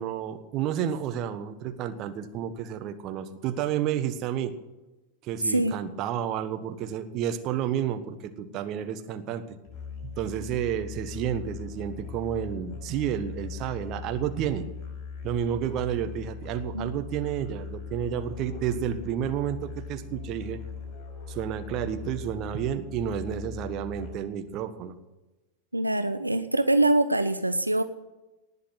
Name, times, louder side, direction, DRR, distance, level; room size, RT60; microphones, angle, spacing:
voice 1, 0.0-4.5 5.2-9.6 10.0-14.7 15.2-20.6 21.3-24.9, right 9 dB, 35° right, 9 dB, 1.4 m, -31 dB
voice 2, 5.4-5.8 16.7-16.9 25.7-27.8, right 1 dB, 85° right, 10 dB, 0.7 m, -24 dB
Musical instrument, 9.6-24.4, left 5 dB, 30° left, 5.6 m, -40 dB
19.0 x 6.8 x 9.1 m, 1.1 s
figure-of-eight pair, 90°, 0 cm